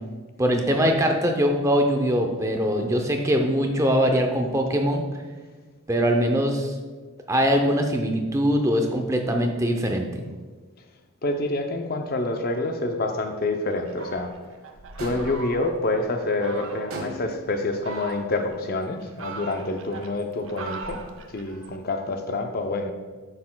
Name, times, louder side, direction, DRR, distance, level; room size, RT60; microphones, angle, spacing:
voice 1, 0.4-5.0 5.9-6.7 7.3-10.2, equal, 15° right, 3 dB, 0.5 m, -22 dB
voice 2, 11.2-14.3 15.0-21.0 21.3-22.9, left 2 dB, 45° left, 5 dB, 0.5 m, -27 dB
Fowl, 13.9-15.9 16.4-17.0 17.6-18.5 19.0-21.8, right 3 dB, 60° right, 0.6 m, -39 dB
sound 1, 15.0-15.5 16.9-17.5, right 1 dB, 80° right, 1.2 m, -35 dB
9.4 x 6.5 x 2.2 m, 1.4 s
head